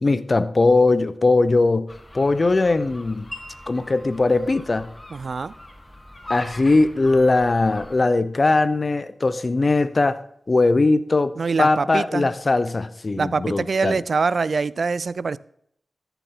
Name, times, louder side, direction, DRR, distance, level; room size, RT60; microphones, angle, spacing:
voice 1, 0.0-1.9 2.1-3.3 3.7-4.9 6.3-10.2 10.5-14.0, left 3 dB, 45° left, 0.8 m, -20 dB
sound 1, 1.9-8.0, left 1 dB, 25° left, 1.9 m, -42 dB
Wind chime, 3.3-9.4, left 1 dB, 5° left, 3.4 m, -48 dB
voice 2, 5.1-5.5 11.4-12.3 13.2-15.4, right 4 dB, 70° right, 0.4 m, -24 dB
13.5 x 7.0 x 3.8 m
cardioid pair, 45°, 0 cm